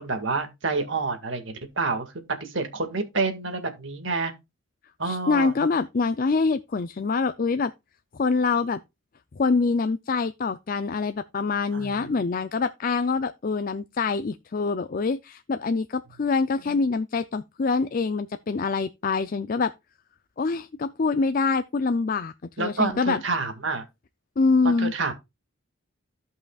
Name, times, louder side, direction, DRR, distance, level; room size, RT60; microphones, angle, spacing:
voice 1, 0.0-2.1 2.4-4.3 5.0-5.5 11.7-12.1 16.7-16.8 22.6-23.8 24.6-25.1, right 3 dB, 65° right, 1.9 m, -28 dB
voice 2, 5.0-7.7 8.1-8.8 9.3-19.7 20.4-23.2 24.4-24.9, left 4 dB, 45° left, 0.4 m, -25 dB
16.0 x 5.6 x 2.3 m
head